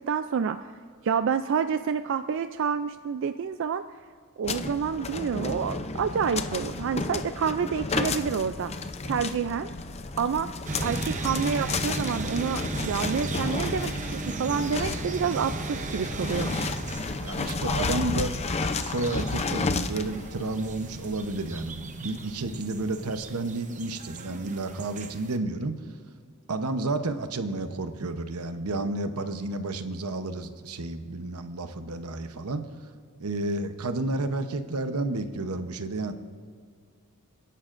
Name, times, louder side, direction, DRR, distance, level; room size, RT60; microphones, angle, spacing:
voice 1, 0.1-0.7 1.0-3.8 4.4-8.7 9.1-9.7 10.2-10.5 10.8-16.6, right 6 dB, 60° right, 10 dB, 0.4 m, -28 dB
sound 1, 4.4-23.2, left 3 dB, 30° left, 0.6 m, -32 dB
sound 2, 10.7-25.4, right 3 dB, 35° right, 0.8 m, -36 dB
voice 2, 17.2-18.3 18.8-25.7 26.5-32.6 33.2-36.1, right 2 dB, 80° right, 9 dB, 0.9 m, -31 dB
28.5 x 11.0 x 2.6 m, 2.1 s
head